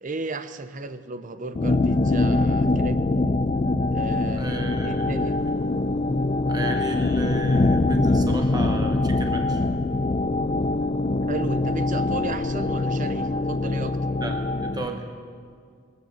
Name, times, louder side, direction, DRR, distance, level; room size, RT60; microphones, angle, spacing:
voice 1, 0.0-3.0 3.9-5.3 11.3-14.0, right 3 dB, 40° right, 11 dB, 0.7 m, -34 dB
sound 1, 1.6-14.9, left 2 dB, 30° left, 0.4 m, -23 dB
voice 2, 4.4-5.8 6.5-9.6 14.2-15.1, right 2 dB, 20° right, 4 dB, 1.2 m, -34 dB
21.5 x 7.7 x 7.3 m, 2.1 s
head